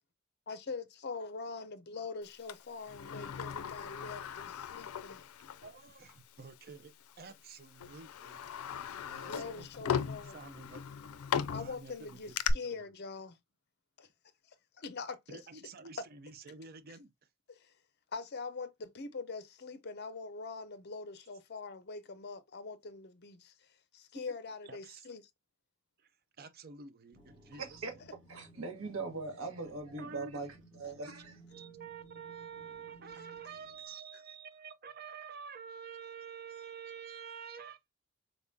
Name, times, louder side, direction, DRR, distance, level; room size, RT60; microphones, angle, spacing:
voice 1, 0.5-5.2 9.3-10.4 11.5-13.4 14.0-14.1 14.5-15.4 17.5-17.7 18.1-25.2, left 4 dB, 50° left, 0.6 m, -43 dB
Sliding door, 2.5-5.7 6.1-6.2 7.1-7.3 7.8-12.5, left 8 dB, 85° left, 0.4 m, -38 dB
voice 2, 5.6-8.4 9.0-11.0 11.4-12.4 12.6-12.8 15.3-17.1 24.7-25.0 26.4-27.8 30.0-30.3 31.1-37.8, right 6 dB, 45° right, 0.6 m, -49 dB
sound 1, 27.1-33.9, right 2 dB, 20° right, 2.6 m, -58 dB
voice 3, 27.6-28.0 28.3-31.3, right 3 dB, 70° right, 1.4 m, -40 dB
4.0 x 3.5 x 2.7 m
head